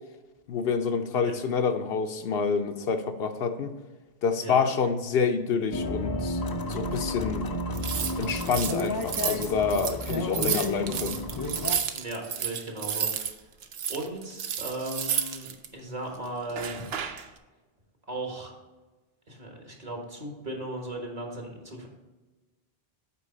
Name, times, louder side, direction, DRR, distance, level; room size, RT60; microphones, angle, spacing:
voice 1, 0.5-3.7 4.2-6.4 6.7-7.5 8.2-11.2, left 5 dB, 75° left, 8 dB, 0.8 m, -27 dB
voice 2, 4.4-4.7 11.9-13.3 13.9-16.8 18.1-18.5 19.3-21.9, right 2 dB, 40° right, 1 dB, 1.5 m, -37 dB
sound 1, 5.7-11.8, left 1 dB, 35° left, 0.4 m, -31 dB
sound 2, 7.7-13.3 13.6-15.7 16.5-17.3, right 8 dB, 75° right, 0.9 m, -31 dB
8.4 x 4.6 x 4.3 m, 1.2 s
omnidirectional pair, 1.0 m